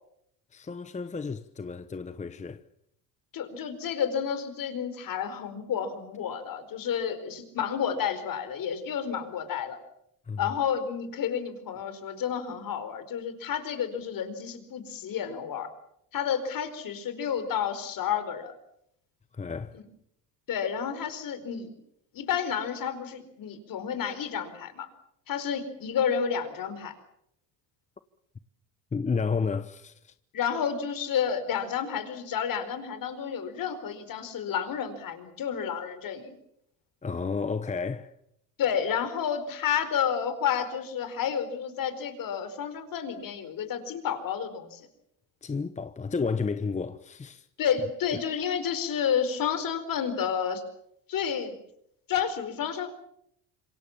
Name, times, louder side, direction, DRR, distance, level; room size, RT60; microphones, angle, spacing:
voice 1, 0.5-2.6 10.3-10.5 19.3-19.8 28.9-30.1 37.0-38.1 45.4-47.5, left 5 dB, 15° left, 1.0 m, -32 dB
voice 2, 3.3-9.8 10.4-15.7 16.1-18.5 19.7-19.8 20.5-21.8 22.1-24.9 25.3-26.9 30.3-36.3 38.6-44.9 47.6-50.6 51.1-51.6 52.1-52.9, left 8 dB, 50° left, 4.6 m, -30 dB
27.0 x 23.5 x 7.3 m
supercardioid pair, 100°, 42 cm